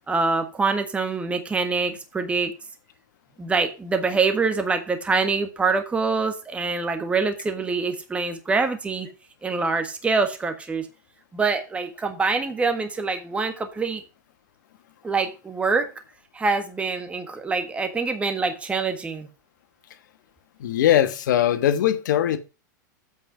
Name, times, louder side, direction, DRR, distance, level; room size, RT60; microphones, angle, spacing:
voice 1, 0.1-2.5 3.4-9.1 9.4-10.9 11.3-14.0 15.0-15.9 16.3-19.3, right 4 dB, 10° right, 1.4 m, -25 dB
voice 2, 20.6-22.4, left 11 dB, 70° left, 1.4 m, -20 dB
8.1 x 5.3 x 5.9 m
hypercardioid pair, 125°, 10 cm